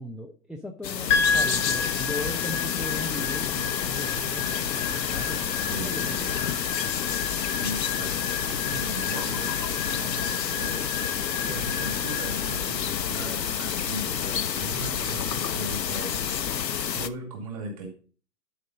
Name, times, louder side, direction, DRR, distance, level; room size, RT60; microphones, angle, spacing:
voice 1, 0.0-6.2 11.5-11.7, left 1 dB, ahead, 2 dB, 0.3 m, -38 dB
sound 1, 0.8-17.1, left 8 dB, 85° left, 0.8 m, -29 dB
sound 2, 1.1-15.5, left 5 dB, 15° left, 1.1 m, -33 dB
voice 2, 5.7-6.6 7.5-17.9, right 2 dB, 20° right, 1 dB, 2.2 m, -39 dB
10.5 x 5.0 x 3.9 m, 0.39 s
hypercardioid pair, 170°, 49 cm